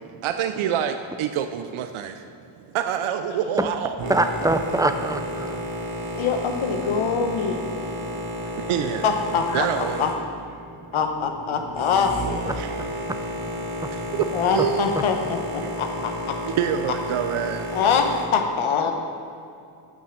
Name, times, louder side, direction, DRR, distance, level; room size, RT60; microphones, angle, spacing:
voice 1, 0.2-2.1 2.7-4.0 8.7-9.0 9.5-10.1 12.6-12.7 14.1-14.3 14.5-15.0 15.6-15.7 16.6-17.6, right 9 dB, 85° right, 8 dB, 0.6 m, -26 dB
Boat Water vehicle, 4.0-18.3, equal, 65° right, 1.4 m, -32 dB
voice 2, 4.1-5.6 12.5-12.6, right 2 dB, 10° right, 8 dB, 0.3 m, -23 dB
voice 3, 6.1-7.6 9.0-9.7 10.0-10.1 10.9-12.1 14.3-16.4 17.7-18.9, left 6 dB, 85° left, 5 dB, 1.0 m, -24 dB
7.8 x 5.9 x 6.3 m, 2.6 s
wide cardioid pair, 115°, 47 cm